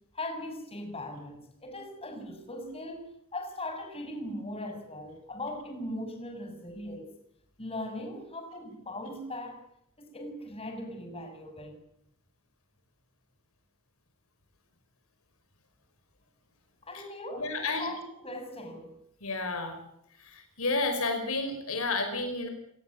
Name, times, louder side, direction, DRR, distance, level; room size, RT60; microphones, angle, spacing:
voice 1, 0.1-7.1 7.6-9.6 10.0-11.8 16.8-19.0, left 1 dB, 25° left, 6.4 m, -39 dB
voice 2, 17.3-17.9 19.2-19.8 20.2-22.5, left 3 dB, 75° left, 5.7 m, -31 dB
26.5 x 19.0 x 8.6 m
head